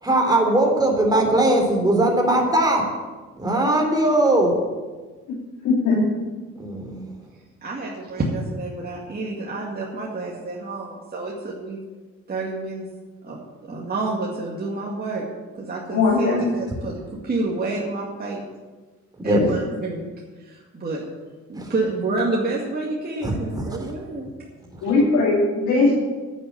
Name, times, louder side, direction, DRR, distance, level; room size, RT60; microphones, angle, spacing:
voice 1, 0.0-2.9 3.4-4.6 6.6-7.1 19.2-19.5 21.6-21.7 23.2-23.7 24.7-24.9, right 1 dB, 15° right, 1 dB, 3.6 m, -20 dB
voice 2, 5.6-6.0 15.9-16.5 24.8-25.9, left 3 dB, 85° left, -5 dB, 3.0 m, -19 dB
voice 3, 7.6-11.8 12.3-12.9 13.2-13.4 13.7-15.3 15.6-17.0 17.2-18.4 19.2-20.1 20.4-21.0 21.5-24.3 24.8-25.0, right 3 dB, 30° right, -4 dB, 2.2 m, -28 dB
9.6 x 8.4 x 7.9 m, 1.3 s
cardioid pair, 90°, 30 cm